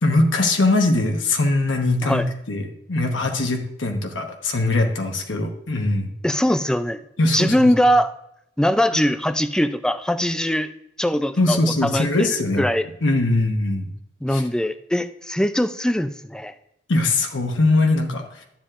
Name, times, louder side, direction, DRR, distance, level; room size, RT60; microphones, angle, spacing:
voice 1, 0.0-6.1 7.2-7.7 11.4-12.6 13.0-13.9 14.3-14.4 16.9-18.4, left 2 dB, 85° left, 3 dB, 1.1 m, -21 dB
voice 2, 6.2-7.0 7.3-8.1 8.6-10.7 11.0-12.3 12.6-12.8 14.2-16.5, equal, 5° left, 11 dB, 0.4 m, -21 dB
11.5 x 7.3 x 2.5 m, 0.79 s
head